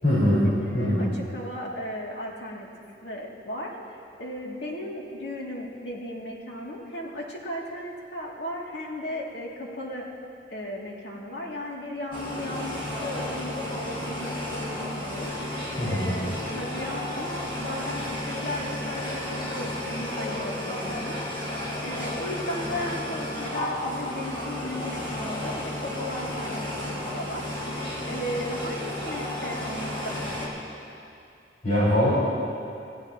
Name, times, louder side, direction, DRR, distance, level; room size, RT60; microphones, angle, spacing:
voice 1, 0.0-0.5 0.7-1.1 15.8-16.2 31.6-32.1, equal, 55° left, -10 dB, 4.9 m, -22 dB
voice 2, 0.6-2.7 3.0-10.0 10.5-21.4 21.8-30.5, left 1 dB, 75° left, -3 dB, 2.6 m, -36 dB
sound 1, 12.1-30.5, left 1 dB, 30° left, 3.8 m, -32 dB
28.5 x 15.5 x 3.0 m, 2.6 s
head